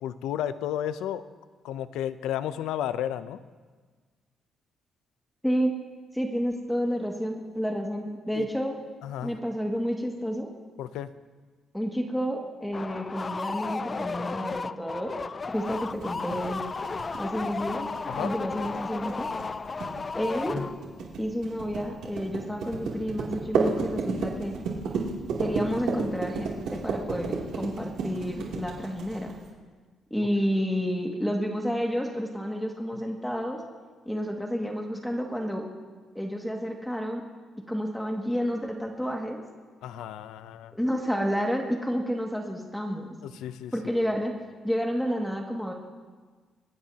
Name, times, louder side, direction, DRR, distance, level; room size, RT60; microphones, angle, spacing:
voice 1, 0.0-1.2 1.6-3.4 8.3-8.5 9.0-9.4 10.8-11.1 18.1-18.3 39.8-40.7 43.2-43.7, left 10 dB, 90° left, 13 dB, 0.6 m, -32 dB
voice 2, 5.4-5.8 6.1-8.8 9.2-10.5 11.7-15.2 15.5-16.6 17.1-17.9 18.2-19.3 20.1-20.5 21.2-24.5 25.4-29.3 30.1-33.6 34.1-35.6 36.1-37.2 37.7-39.4 40.7-43.1 43.7-44.3 44.6-45.7, equal, 5° left, 1 dB, 2.1 m, -30 dB
sound 1, 12.7-21.0, left 4 dB, 30° left, 0.3 m, -34 dB
sound 2, 15.7-29.5, right 5 dB, 80° right, 2.9 m, -32 dB
22.5 x 17.5 x 2.9 m, 1.4 s
cardioid pair, 90°, 0 cm